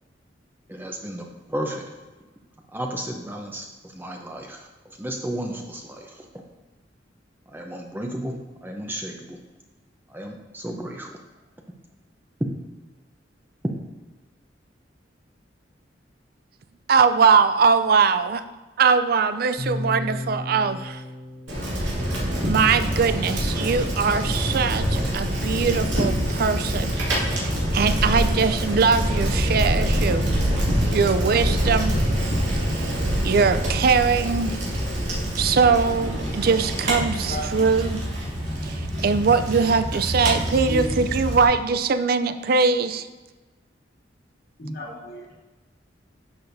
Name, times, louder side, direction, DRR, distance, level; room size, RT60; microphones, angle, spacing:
voice 1, 0.7-1.9 2.7-6.3 7.5-9.4 10.1-11.2 12.4-12.5 13.6-13.7, right 1 dB, 10° right, 1 dB, 0.7 m, -33 dB
voice 2, 16.9-18.4 18.8-21.0 22.4-30.2 30.9-32.0 32.6-33.0 33.2-34.6 35.4-38.0 38.6-43.1, right 5 dB, 55° right, 11 dB, 0.4 m, -21 dB
sound 1, 19.6-23.6, left 2 dB, 40° left, 0.8 m, -35 dB
Bicycle, 21.5-41.4, equal, 90° right, 2.1 m, -25 dB
voice 3, 36.9-37.5 40.3-40.9 44.6-45.3, equal, 55° left, -2 dB, 1.8 m, -35 dB
10.5 x 6.8 x 2.7 m, 1.2 s
head